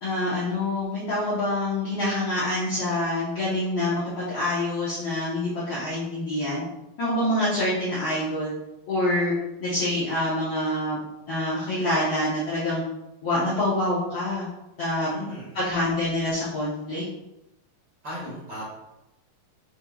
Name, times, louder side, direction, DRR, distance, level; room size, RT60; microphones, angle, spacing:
voice 1, 0.0-6.6 7.0-8.5 8.9-9.3 9.6-11.0 11.3-12.8 13.2-14.5 14.8-15.1 15.5-17.0, left 1 dB, 75° left, -9 dB, 1.1 m, -26 dB
voice 2, 15.1-15.5 18.0-18.7, equal, 40° right, -7 dB, 1.7 m, -36 dB
7.3 x 3.0 x 2.3 m, 0.94 s
omnidirectional pair, 3.8 m